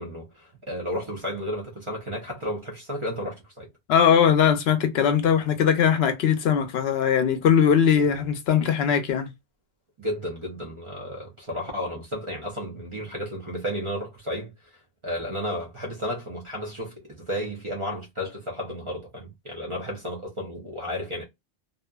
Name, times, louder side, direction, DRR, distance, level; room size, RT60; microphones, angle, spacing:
voice 1, 0.0-3.7 10.0-14.5 15.0-21.2, equal, 35° right, 0.5 m, -33 dB
voice 2, 3.9-9.3, left 8 dB, 70° left, 0.8 m, -20 dB
2.5 x 2.4 x 2.2 m
omnidirectional pair, 1.1 m